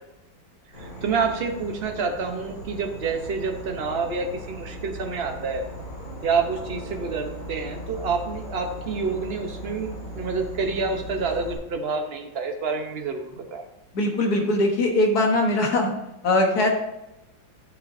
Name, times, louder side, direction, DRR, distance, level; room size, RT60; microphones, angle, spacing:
Insect / Frog, 0.7-11.6, equal, 80° left, 3.7 m, -38 dB
voice 1, 0.8-5.6 6.2-13.6, right 4 dB, 45° right, 3 dB, 0.8 m, -28 dB
voice 2, 13.9-15.9 16.2-16.7, left 2 dB, 55° left, 2 dB, 1.7 m, -21 dB
11.5 x 6.5 x 2.7 m, 0.93 s
omnidirectional pair, 2.1 m